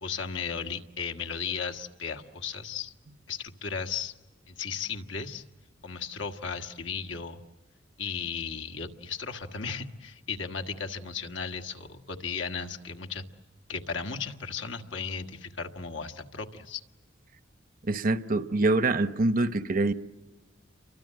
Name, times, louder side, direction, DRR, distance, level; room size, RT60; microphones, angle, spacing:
voice 1, 0.0-2.9 3.3-4.1 4.5-5.4 5.8-7.4 8.0-13.2 13.7-16.8, left 5 dB, 80° left, 4 dB, 1.6 m, -35 dB
voice 2, 17.8-19.9, right 2 dB, 50° right, 12 dB, 0.9 m, -25 dB
29.5 x 23.5 x 7.6 m, 1.2 s
head